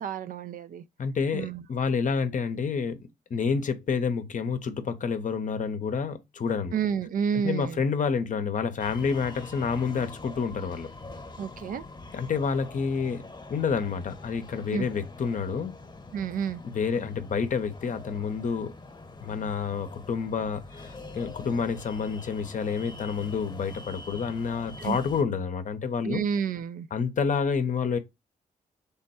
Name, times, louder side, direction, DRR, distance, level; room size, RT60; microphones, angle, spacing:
voice 1, 0.0-0.8 1.3-1.7 6.7-7.8 11.4-11.8 14.7-14.9 16.1-16.6 24.8-25.0 26.0-26.9, right 7 dB, 55° right, 0.4 m, -30 dB
voice 2, 1.0-6.7 7.4-10.9 12.1-13.2 13.5-15.8 16.7-18.7 19.2-26.2 26.9-28.0, left 5 dB, 50° left, 0.7 m, -29 dB
sound 1, 8.8-25.2, left 2 dB, 25° left, 1.0 m, -44 dB
3.4 x 2.2 x 4.1 m
supercardioid pair, 50°, 17 cm